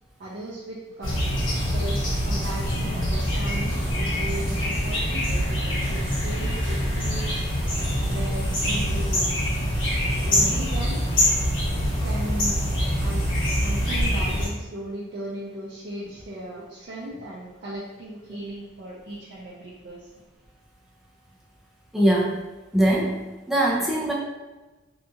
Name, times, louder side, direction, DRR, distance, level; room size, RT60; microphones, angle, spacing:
voice 1, 0.2-1.2 1.7-7.4 7.8-9.3 10.1-11.0 12.0-12.6 13.0-13.3 13.6-20.1, right 1 dB, 60° right, -6 dB, 0.5 m, -37 dB
sound 1, 1.0-14.5, equal, 80° left, 1.2 m, -24 dB
voice 2, 21.9-22.4 22.7-24.1, right 1 dB, ahead, -4 dB, 0.4 m, -22 dB
2.8 x 2.5 x 2.4 m, 1.2 s
head